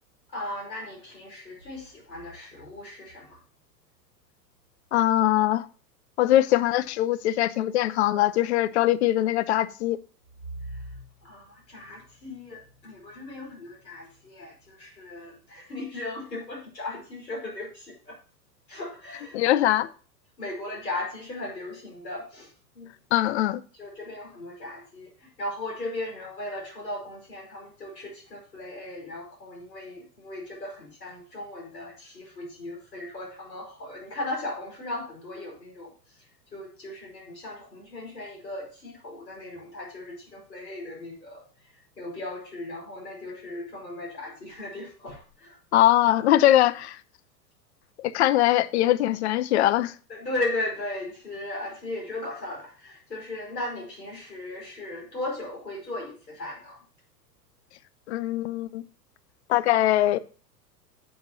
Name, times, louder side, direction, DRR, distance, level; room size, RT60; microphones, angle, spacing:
voice 1, 0.3-3.4 10.6-18.2 18.7-19.9 20.4-22.9 23.8-35.9 36.5-41.4 42.0-45.6 50.1-56.8, left 2 dB, 75° left, 5.2 m, -37 dB
voice 2, 4.9-5.6 6.2-10.0 19.3-19.9 23.1-23.6 45.7-47.0 48.0-49.9 58.1-58.8 59.5-60.2, left 13 dB, 45° left, 0.6 m, -22 dB
9.4 x 7.7 x 2.8 m
figure-of-eight pair, 95°, 50 cm